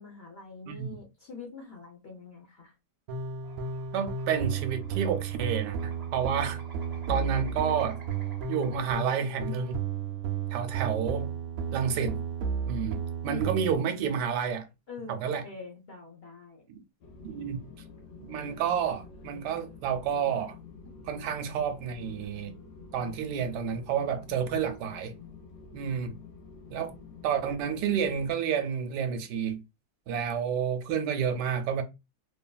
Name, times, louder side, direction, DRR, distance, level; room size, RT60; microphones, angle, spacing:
voice 1, 0.0-2.7 13.3-13.7 14.9-16.7, left 4 dB, 55° left, 0.7 m, -44 dB
voice 2, 0.7-1.0 3.9-6.6 7.1-8.0 8.5-9.8 10.5-11.3 11.7-12.2 12.7-14.7 15.1-15.4 16.7-16.8 17.2-17.6 18.2-20.6 21.1-22.5 22.9-25.1 25.7-26.2 26.7-26.9 27.2-29.6 30.1-31.8, right 7 dB, 85° right, 1.2 m, -30 dB
sound 1, 3.1-13.7, right 7 dB, 70° right, 0.9 m, -33 dB
sound 2, 3.4-9.0, right 2 dB, 45° right, 0.5 m, -51 dB
sound 3, 17.0-28.3, left 5 dB, 85° left, 1.2 m, -48 dB
3.1 x 2.4 x 2.2 m
omnidirectional pair, 1.7 m